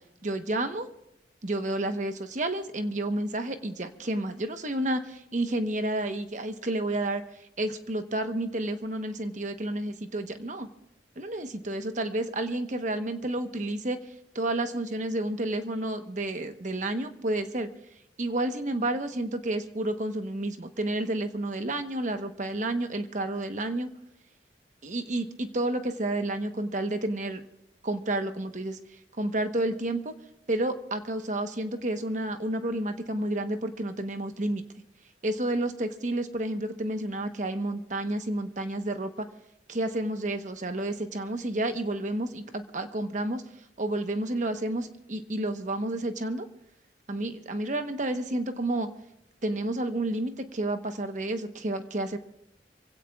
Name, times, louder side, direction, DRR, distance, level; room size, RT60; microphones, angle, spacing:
voice 1, 0.2-0.9 1.4-7.2 7.6-10.7 11.2-14.0 14.3-17.7 18.2-23.9 24.8-27.4 27.8-28.8 29.2-30.1 30.5-34.6 35.2-39.3 39.7-43.4 43.8-46.5 47.1-48.9 49.4-52.2, right 1 dB, 45° right, 7 dB, 1.1 m, -30 dB
26.5 x 16.5 x 2.4 m, 0.80 s
head